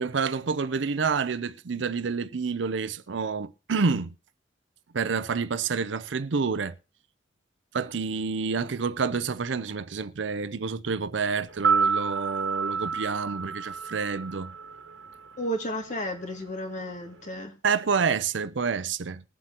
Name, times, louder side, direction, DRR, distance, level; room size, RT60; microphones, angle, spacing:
voice 1, 0.0-4.1 4.9-6.7 7.7-14.5 17.6-19.2, right 5 dB, 70° right, 0.6 m, -28 dB
sound 1, 11.5-15.7 15.9-16.0, right 5 dB, 90° right, 1.4 m, -29 dB
voice 2, 15.4-17.6, equal, 40° left, 2.3 m, -33 dB
21.5 x 7.6 x 2.9 m
head